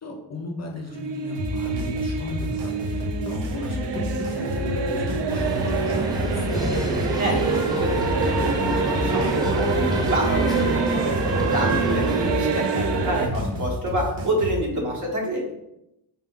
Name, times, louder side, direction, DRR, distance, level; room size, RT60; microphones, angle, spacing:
voice 1, 0.0-6.9 13.1-13.6, left 1 dB, 40° left, 1 dB, 0.5 m, -35 dB
sound 1, 0.8-13.3, right 4 dB, 70° right, 0.6 m, -27 dB
sound 2, 1.3-14.6, left 2 dB, 90° right, 0.9 m, -31 dB
sound 3, 5.3-12.3, right 2 dB, 10° right, 0.4 m, -27 dB
voice 2, 7.2-15.5, right 1 dB, 45° right, -2 dB, 1.1 m, -28 dB
4.1 x 2.2 x 3.6 m, 0.83 s
wide cardioid pair, 130°, 43 cm